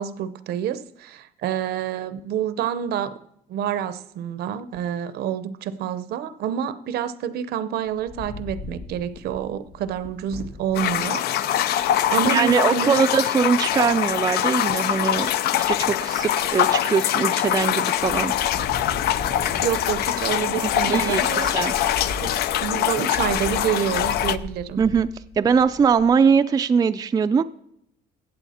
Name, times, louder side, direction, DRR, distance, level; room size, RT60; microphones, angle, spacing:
voice 1, 0.0-3.2 3.5-13.0 19.6-21.5 22.2-24.8, right 9 dB, 70° right, 14 dB, 0.7 m, -28 dB
Wind, 7.9-11.0 11.5-11.6 11.8-12.2 13.6-14.2 14.7-15.2 15.6-16.7 17.2-17.7 18.0-26.2, left 3 dB, 90° left, 2.0 m, -38 dB
sound 1, 10.7-24.4, left 12 dB, 70° left, 0.5 m, -23 dB
voice 2, 12.3-18.3 20.6-21.7 24.8-25.1 25.4-27.4, right 6 dB, 20° right, 9 dB, 0.4 m, -21 dB
15.5 x 7.9 x 4.3 m, 0.77 s
cardioid pair, 110°, 17 cm